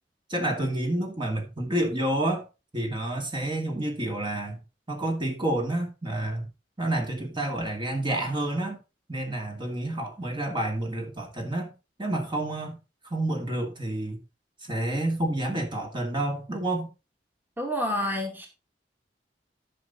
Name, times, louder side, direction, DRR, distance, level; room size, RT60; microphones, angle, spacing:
voice 1, 0.3-2.4 2.7-4.6 4.9-6.4 6.8-8.8 9.1-11.7 12.0-12.8 13.1-14.2 14.6-16.9, right 1 dB, 30° right, 2.2 m, -29 dB
voice 2, 17.6-18.5, left 1 dB, 10° right, 2.1 m, -28 dB
12.5 x 5.7 x 4.0 m
head